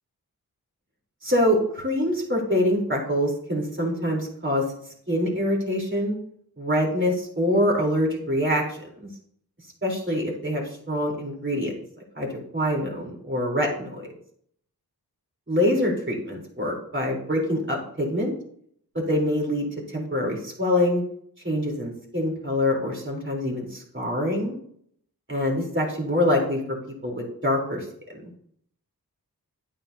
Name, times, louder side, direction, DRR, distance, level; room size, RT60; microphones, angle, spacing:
voice 1, 1.2-4.7 5.1-6.2 6.6-9.1 9.8-11.7 12.2-14.1 15.5-18.3 18.9-21.0 21.4-24.6 25.3-26.8 27.0-27.9 28.1-28.3, left 1 dB, 30° right, -2 dB, 3.6 m, -25 dB
10.0 x 8.7 x 2.8 m, 0.65 s
cardioid pair, 50°, 38 cm